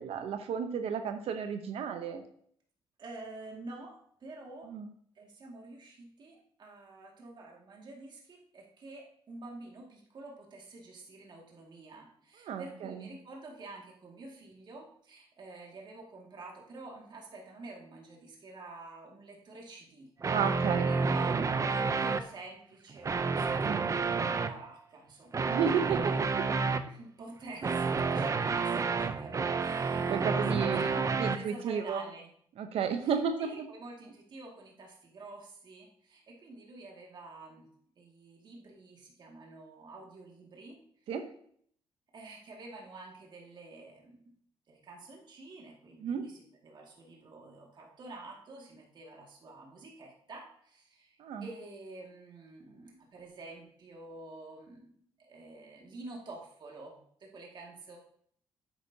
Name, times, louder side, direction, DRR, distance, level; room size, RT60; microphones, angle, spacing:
voice 1, 0.0-2.2 4.7-4.9 12.4-13.1 20.3-20.9 23.6-23.9 25.4-26.5 30.0-30.9 31.2-32.0 32.6-33.6 41.1-41.2 46.0-46.3 51.2-51.5, right 7 dB, 70° right, 7 dB, 0.8 m, -33 dB
voice 2, 3.0-4.7 5.2-20.1 20.9-26.3 26.9-30.3 30.6-31.0 31.3-32.3 33.0-37.7 38.0-40.8 42.1-44.3 44.7-54.9 55.2-58.0, right 2 dB, 50° right, -1 dB, 2.1 m, -48 dB
sound 1, 20.2-22.2 22.9-24.5 25.3-26.9 27.6-31.4, right 4 dB, 30° right, 0.6 m, -29 dB
10.0 x 8.8 x 2.8 m, 0.62 s
cardioid pair, 100°, 10 cm